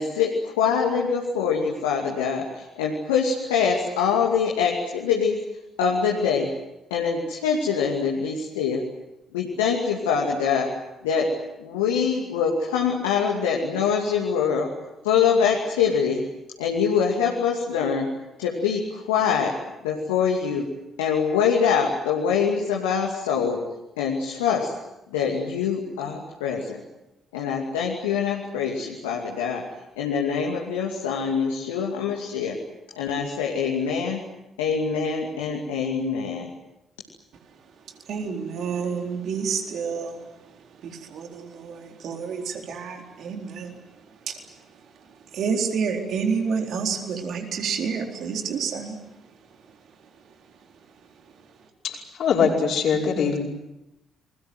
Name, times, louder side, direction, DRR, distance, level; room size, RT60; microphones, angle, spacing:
voice 1, 0.0-6.5 6.9-8.9 9.3-10.7 11.0-11.3 11.6-14.7 15.0-16.2 16.6-18.1 18.4-19.6 19.8-20.7 21.0-23.6 24.0-24.8 25.1-26.8 27.3-29.7 30.0-32.6 32.9-34.2 34.6-36.5, left 6 dB, 80° left, -1 dB, 2.5 m, -24 dB
voice 2, 38.1-40.5 40.8-43.8 44.2-44.4 45.3-49.0, right 6 dB, 60° right, 3 dB, 4.0 m, -29 dB
voice 3, 51.8-53.4, left 6 dB, 60° left, 0 dB, 5.3 m, -22 dB
29.5 x 21.5 x 7.9 m, 0.93 s
figure-of-eight pair, 45°, 0 cm